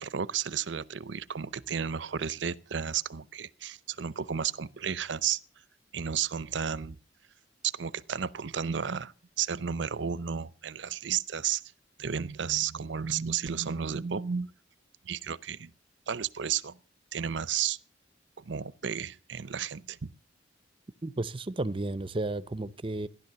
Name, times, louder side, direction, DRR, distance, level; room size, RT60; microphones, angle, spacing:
voice 1, 0.0-5.4 5.9-7.0 7.6-11.6 12.0-14.5 15.0-15.7 16.1-16.8 17.1-17.8 18.4-20.1, right 8 dB, 70° right, 0.6 m, -32 dB
voice 2, 21.0-23.1, right 2 dB, 30° right, 0.6 m, -33 dB
15.5 x 11.0 x 6.8 m
head